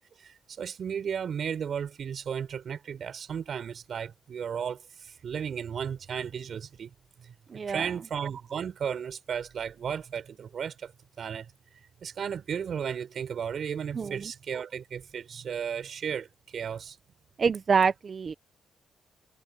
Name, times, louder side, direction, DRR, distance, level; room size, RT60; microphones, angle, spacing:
voice 1, 0.2-6.9 7.2-7.3 7.7-10.9 11.2-11.5 12.0-17.0, right 7 dB, 55° right, 5.2 m, -34 dB
voice 2, 7.5-7.8 14.0-14.3 17.4-18.3, right 5 dB, 40° right, 1.1 m, -26 dB
cardioid pair, 100°, 0 cm